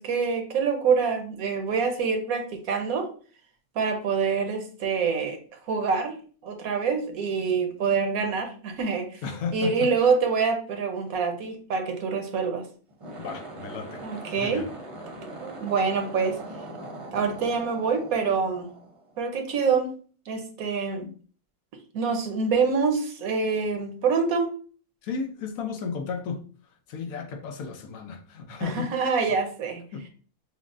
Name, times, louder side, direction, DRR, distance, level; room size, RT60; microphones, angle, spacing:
voice 1, 0.0-3.1 3.7-5.4 5.7-6.2 6.4-9.2 9.5-12.6 14.0-14.6 15.4-16.4 17.1-18.7 19.2-19.9 20.3-21.1 21.9-24.6 28.6-29.8, right 5 dB, 85° right, 1.3 m, -26 dB
voice 2, 9.2-9.9 13.2-14.0 14.3-14.7 25.0-26.5 26.9-28.9 29.9-30.0, left 5 dB, 80° left, 1.1 m, -34 dB
sound 1, 12.9-19.4, right 1 dB, 30° right, 0.6 m, -41 dB
6.1 x 2.1 x 2.5 m
omnidirectional pair, 1.4 m